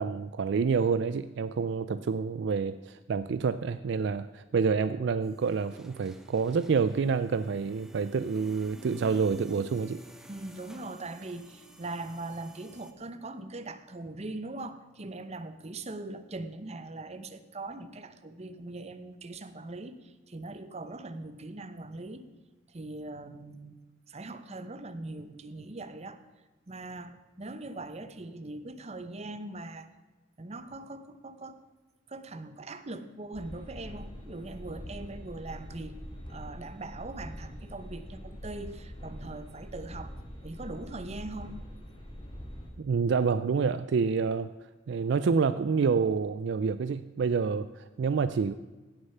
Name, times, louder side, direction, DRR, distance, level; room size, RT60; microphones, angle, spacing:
voice 1, 0.0-10.0 42.8-44.5 44.9-48.5, right 5 dB, 60° right, 13 dB, 0.4 m, -28 dB
sound 1, 5.2-12.9, equal, 5° right, 0.8 m, -52 dB
voice 2, 10.3-22.3 22.7-23.7 24.1-26.2 26.7-29.9 30.4-31.6 32.1-36.0 36.3-40.1 40.4-41.6, right 2 dB, 35° right, 11 dB, 0.8 m, -41 dB
sound 2, 33.3-42.7, equal, 25° left, 2.3 m, -44 dB
17.0 x 6.6 x 5.6 m, 1.2 s
head